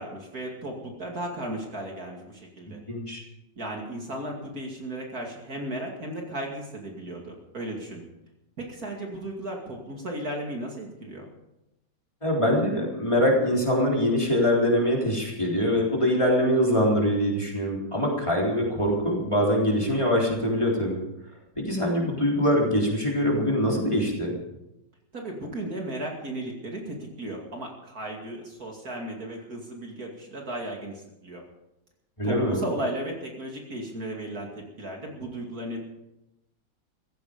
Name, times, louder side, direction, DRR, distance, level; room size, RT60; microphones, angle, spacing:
voice 1, 0.0-2.8 3.6-8.0 8.6-11.2 25.1-30.9 31.2-31.4 32.2-35.8, right 1 dB, 50° right, 0 dB, 2.9 m, -35 dB
voice 2, 2.9-3.2 12.2-21.0 21.6-24.4 32.2-32.6, equal, 15° left, -3 dB, 3.8 m, -23 dB
16.0 x 15.5 x 5.2 m, 0.91 s
omnidirectional pair, 2.1 m